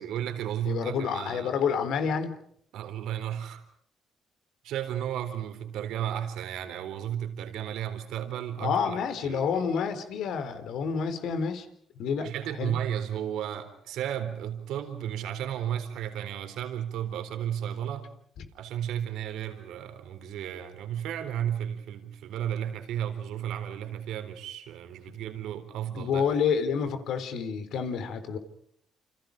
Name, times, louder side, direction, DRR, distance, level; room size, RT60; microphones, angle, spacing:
voice 1, 0.0-1.6 2.7-3.6 4.6-9.6 12.2-18.1 18.5-26.2, right 10 dB, 85° right, 3.9 m, -34 dB
voice 2, 0.6-2.3 8.6-11.7 12.0-12.3 12.6-12.8 18.4-18.5 25.9-28.4, left 6 dB, 80° left, 3.7 m, -29 dB
29.0 x 28.5 x 5.2 m
cardioid pair, 90°, 0 cm